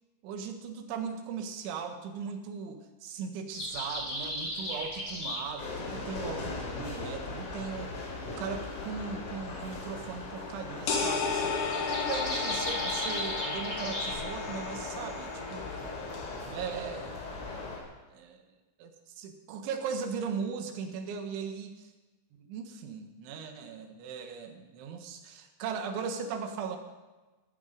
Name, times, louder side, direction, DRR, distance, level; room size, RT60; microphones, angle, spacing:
voice 1, 0.2-15.9 16.5-17.3 18.1-18.4 18.8-21.9 22.4-26.8, right 6 dB, 75° right, 5 dB, 3.8 m, -38 dB
sound 1, 3.5-17.7, equal, 20° left, 5.7 m, -39 dB
sound 2, 5.6-17.8, left 3 dB, 75° left, 6.1 m, -39 dB
sound 3, 10.9-16.4, left 5 dB, 60° left, 2.2 m, -34 dB
17.0 x 13.5 x 5.2 m, 1.2 s
omnidirectional pair, 5.7 m